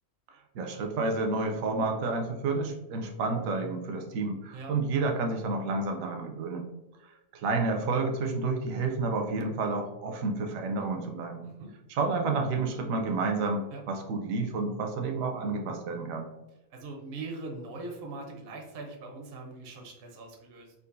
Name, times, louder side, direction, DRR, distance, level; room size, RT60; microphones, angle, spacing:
voice 1, 0.5-6.7 7.3-11.4 11.9-16.3, right 3 dB, 75° right, 3 dB, 1.0 m, -30 dB
voice 2, 16.7-20.7, right 3 dB, 60° right, 1 dB, 0.7 m, -41 dB
3.9 x 2.4 x 2.5 m, 0.97 s
omnidirectional pair, 1.5 m